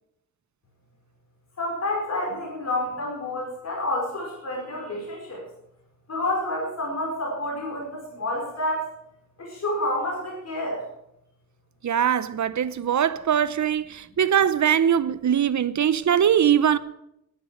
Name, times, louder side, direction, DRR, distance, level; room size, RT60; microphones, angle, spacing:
voice 1, 1.6-5.4 6.1-8.9 9.4-10.8, left 1 dB, 55° left, 5.1 m, -29 dB
voice 2, 11.8-16.8, right 9 dB, 65° right, 0.8 m, -21 dB
12.0 x 11.0 x 7.5 m
wide cardioid pair, 130°, 31 cm